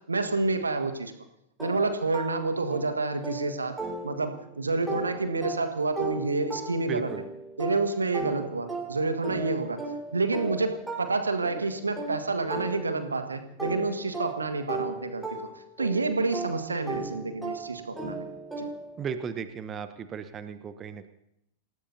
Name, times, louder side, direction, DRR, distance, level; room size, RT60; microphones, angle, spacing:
voice 1, 0.1-1.1 1.6-3.8 4.0-7.1 7.6-9.8 10.1-15.4 15.8-18.2 18.6-18.7, right 3 dB, 80° right, 7 dB, 1.7 m, -28 dB
sound 1, 1.6-4.5 4.9-13.2 13.6-19.0, right 3 dB, 5° right, 4.6 m, -37 dB
voice 2, 6.9-7.2 19.0-21.1, right 7 dB, 25° right, 11 dB, 1.0 m, -35 dB
28.0 x 17.5 x 2.8 m, 0.77 s
figure-of-eight pair, 90°, 0 cm